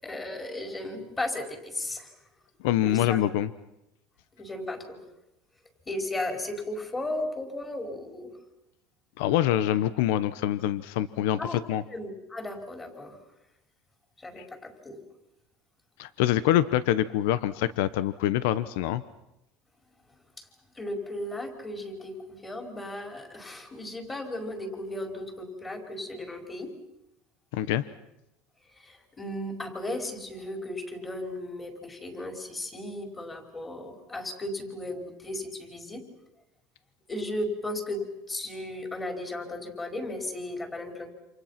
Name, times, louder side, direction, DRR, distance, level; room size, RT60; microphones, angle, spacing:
voice 1, 0.0-2.1 2.8-3.2 4.4-5.0 5.9-8.3 11.4-11.6 11.9-13.2 14.2-15.0 20.4-20.5 20.8-26.7 28.7-36.0 37.1-41.1, left 1 dB, 15° left, 3 dB, 5.2 m, -35 dB
voice 2, 2.6-3.5 9.2-11.4 11.7-11.8 16.0-19.0 27.5-27.8, left 12 dB, 80° left, 15 dB, 1.0 m, -25 dB
29.0 x 27.5 x 5.9 m, 0.89 s
supercardioid pair, 130°, 0 cm